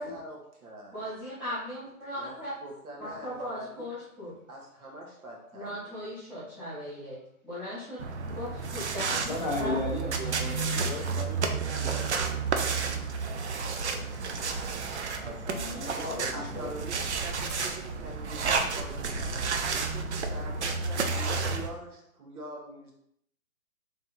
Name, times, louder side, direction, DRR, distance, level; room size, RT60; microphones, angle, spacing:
voice 1, 0.0-1.0 2.1-2.4 2.6-3.9 4.5-6.0 15.8-19.5 19.8-22.9, right 1 dB, 80° right, -1 dB, 1.5 m, -44 dB
voice 2, 0.9-2.5 3.0-4.3 5.5-7.2 7.4-8.0 8.3-9.1 9.6-9.7, equal, 5° right, -14 dB, 0.8 m, -37 dB
sound 1, 8.0-21.7, right 4 dB, 55° right, 0.4 m, -31 dB
voice 3, 9.1-12.5 15.2-16.3 16.5-16.7, left 2 dB, 35° left, -4 dB, 0.4 m, -36 dB
3.3 x 2.7 x 3.7 m, 0.74 s
hypercardioid pair, 160°, 44 cm